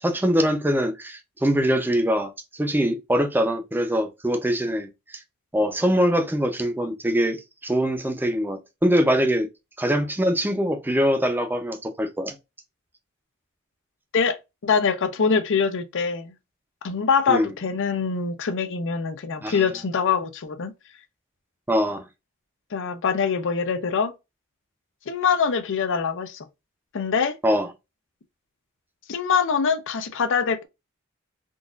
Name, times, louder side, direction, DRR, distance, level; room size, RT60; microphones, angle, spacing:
voice 1, 0.0-5.2 5.5-9.5 9.8-12.4 17.3-17.5 19.4-19.7 21.7-22.1 27.4-27.7, equal, 10° right, 0.6 m, -23 dB
voice 2, 14.6-16.3 16.8-20.7 22.7-24.1 25.1-26.5 26.9-27.4 29.1-30.7, left 6 dB, 60° left, 0.6 m, -24 dB
3.8 x 2.5 x 2.4 m
head